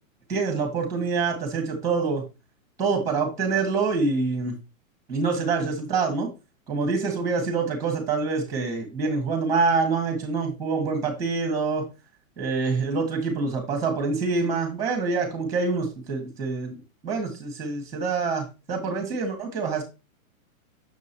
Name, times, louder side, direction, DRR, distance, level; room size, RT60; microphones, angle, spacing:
voice 1, 0.3-2.2 2.8-4.6 5.1-6.3 6.7-11.8 12.4-16.8 17.0-19.8, right 4 dB, 10° right, 3 dB, 1.5 m, -26 dB
6.9 x 6.3 x 2.8 m, 0.27 s
supercardioid pair, 180°, 41 cm